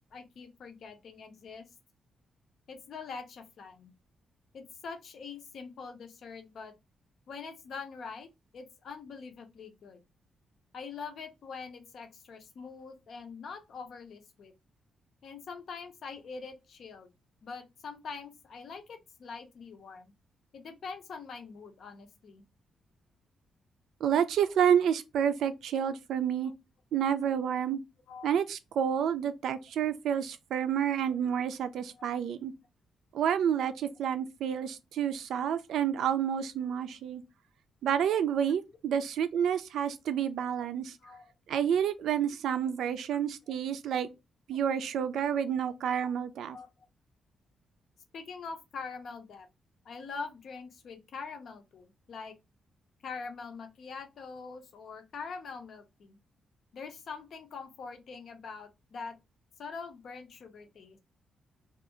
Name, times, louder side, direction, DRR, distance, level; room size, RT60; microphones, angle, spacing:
voice 1, 0.1-1.7 2.7-3.9 4.5-6.7 7.3-8.3 8.5-10.0 10.7-14.5 15.2-17.1 17.4-20.1 20.5-22.4 26.4-26.5 28.1-28.3 32.0-32.1 41.0-41.3 46.5-46.7 48.1-49.5 49.8-52.3 53.0-56.2 56.7-59.2 59.6-61.0, left 5 dB, 50° left, 0.6 m, -44 dB
voice 2, 24.0-26.5 26.9-27.8 28.2-32.5 33.1-37.2 37.8-41.0 41.5-44.1 44.5-46.6, right 8 dB, 75° right, 0.3 m, -29 dB
2.6 x 2.4 x 2.7 m
wide cardioid pair, 175°, 0 cm